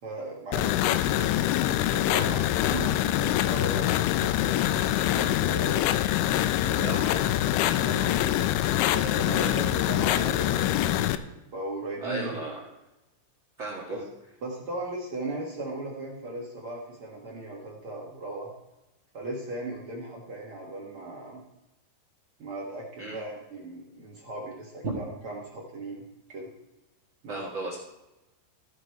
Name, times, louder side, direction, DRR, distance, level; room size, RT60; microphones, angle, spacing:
voice 1, 0.0-4.5 5.1-5.9 6.6-7.2 7.7-8.4 8.9-12.5 13.9-14.0 14.4-18.5 19.1-21.4 22.4-26.5 27.2-27.4, right 2 dB, 60° right, -3 dB, 1.4 m, -37 dB
sound 1, 0.5-11.2, left 13 dB, 85° left, 2.9 m, -25 dB
voice 2, 12.0-12.6 13.6-14.0 23.0-23.2 27.3-27.8, right 2 dB, 80° right, -1 dB, 1.1 m, -35 dB
15.5 x 7.4 x 4.7 m, 0.98 s
omnidirectional pair, 5.3 m